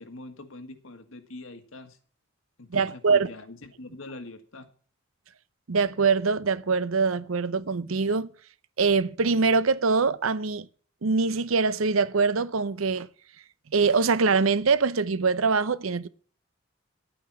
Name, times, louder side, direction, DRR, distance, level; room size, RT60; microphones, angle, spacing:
voice 1, 0.0-2.0 2.6-4.7, left 2 dB, 80° left, 1.8 m, -43 dB
voice 2, 2.7-3.3 5.7-8.3 8.8-10.7 11.0-13.1 13.7-16.1, right 4 dB, 85° right, 0.7 m, -23 dB
11.5 x 8.9 x 6.1 m
head